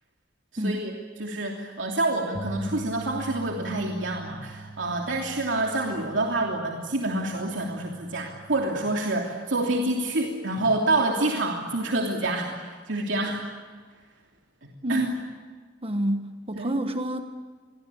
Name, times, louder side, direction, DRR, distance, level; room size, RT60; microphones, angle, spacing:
voice 1, 0.5-0.9 1.2-13.4 14.6-15.1 16.6-16.7, right 2 dB, 75° right, 0 dB, 3.0 m, -27 dB
sound 1, 2.3-8.6, right 1 dB, 35° left, 5.0 m, -42 dB
voice 2, 15.8-17.2, right 1 dB, 30° right, 7 dB, 1.3 m, -28 dB
28.5 x 23.0 x 8.5 m, 1.6 s
head